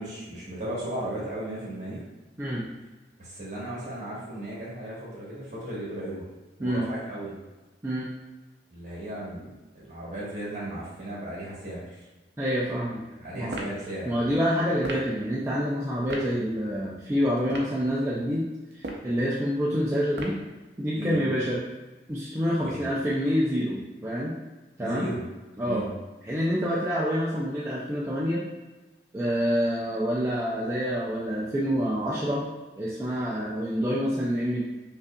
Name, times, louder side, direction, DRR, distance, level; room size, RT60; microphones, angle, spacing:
voice 1, 0.0-2.0 3.2-6.2 6.6-7.4 8.7-12.0 13.2-14.3 21.0-21.2 22.6-22.9 24.8-25.2 25.6-25.9, right 1 dB, 45° right, -6 dB, 1.3 m, -36 dB
voice 2, 12.4-13.0 13.3-13.6 14.0-18.5 18.7-20.4 20.8-21.6 22.1-24.4 24.8-25.1 25.6-25.8 26.3-28.4 29.1-32.5 32.8-34.6, equal, 15° right, -7 dB, 0.4 m, -27 dB
sound 1, 13.5-13.8 14.8-15.1 16.1-16.3 17.4-17.8 18.7-19.1 20.2-20.5, right 1 dB, 65° right, 0.5 m, -35 dB
5.3 x 2.5 x 2.3 m, 1.2 s
head